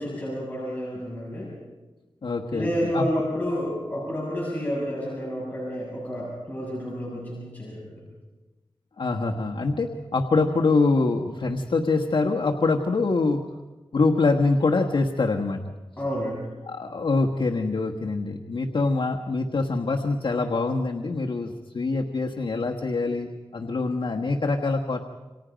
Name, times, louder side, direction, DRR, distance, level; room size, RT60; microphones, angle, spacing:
voice 1, 0.0-1.5 2.5-7.9 16.0-16.5, equal, 20° left, -5 dB, 7.2 m, -30 dB
voice 2, 2.2-3.1 9.0-13.4 13.9-15.6 16.7-25.0, left 3 dB, 65° left, 1 dB, 1.4 m, -24 dB
29.0 x 26.0 x 5.2 m, 1.2 s
wide cardioid pair, 80°, 9 cm